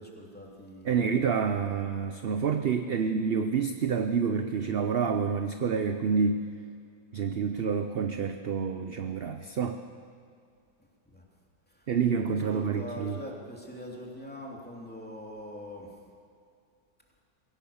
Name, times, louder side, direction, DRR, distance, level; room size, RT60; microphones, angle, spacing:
voice 1, 0.0-1.6 11.1-11.2 12.3-15.9, equal, 5° left, -2 dB, 3.0 m, -43 dB
voice 2, 0.9-6.4 7.1-9.8 11.9-13.2, right 6 dB, 50° right, 8 dB, 0.7 m, -28 dB
22.5 x 17.0 x 7.1 m, 2.3 s
omnidirectional pair, 1.7 m